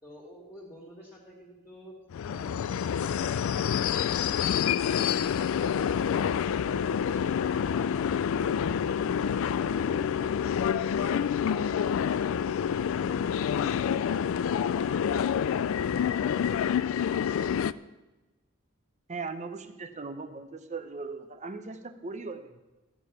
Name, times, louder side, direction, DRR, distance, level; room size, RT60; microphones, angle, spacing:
voice 1, 0.0-1.9, equal, 15° left, -5 dB, 1.9 m, -50 dB
sound 1, 2.1-17.7, left 8 dB, 65° left, 0.3 m, -27 dB
voice 2, 19.1-22.6, right 4 dB, 35° right, 9 dB, 0.7 m, -39 dB
14.0 x 6.6 x 5.7 m, 1.1 s
head